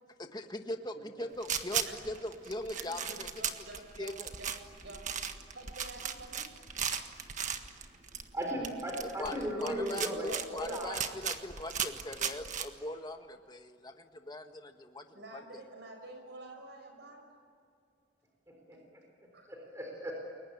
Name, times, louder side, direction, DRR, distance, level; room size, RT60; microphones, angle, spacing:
voice 1, 0.2-3.3 4.0-4.3 9.0-15.0 15.3-15.4, left 1 dB, 25° left, 6 dB, 1.5 m, -41 dB
sound 1, 1.4-12.6, right 7 dB, 40° right, 1.6 m, -37 dB
voice 2, 1.8-2.1 2.8-4.5 4.8-5.0 5.5-6.5 15.1-17.3 19.3-19.5, right 2 dB, 65° right, 4 dB, 5.6 m, -49 dB
voice 3, 8.3-10.9 18.5-18.8 19.5-20.1, right 1 dB, 15° right, 0 dB, 4.4 m, -36 dB
29.5 x 22.5 x 8.9 m, 2.3 s
head